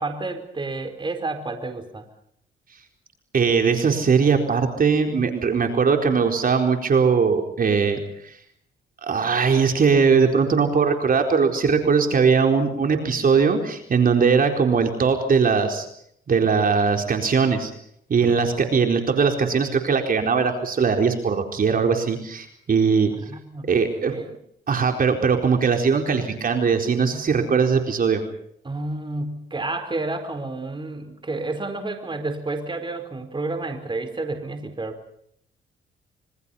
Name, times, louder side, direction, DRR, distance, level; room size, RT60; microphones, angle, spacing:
voice 1, 0.0-2.1 18.2-18.4 23.2-24.3 28.6-35.0, right 2 dB, 25° right, 7 dB, 4.6 m, -30 dB
voice 2, 3.3-8.3 9.0-15.9 16.3-17.7 18.1-23.1 23.7-24.1 24.7-28.2, right 5 dB, 45° right, 4 dB, 4.3 m, -20 dB
27.0 x 24.5 x 5.7 m, 0.70 s
cardioid pair, 90°, 20 cm